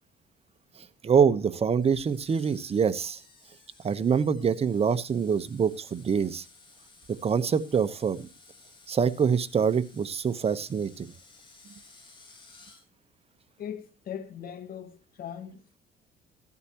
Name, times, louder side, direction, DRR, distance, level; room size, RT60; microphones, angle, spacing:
voice 1, 1.0-3.2 3.8-6.4 7.1-8.3 8.9-11.1, right 6 dB, 35° right, 1.1 m, -25 dB
Screech, 1.8-12.8, left 3 dB, 30° left, 7.6 m, -56 dB
voice 2, 13.6-15.8, left 9 dB, 60° left, 2.0 m, -40 dB
16.0 x 12.5 x 3.0 m
cardioid pair, 95°, 17 cm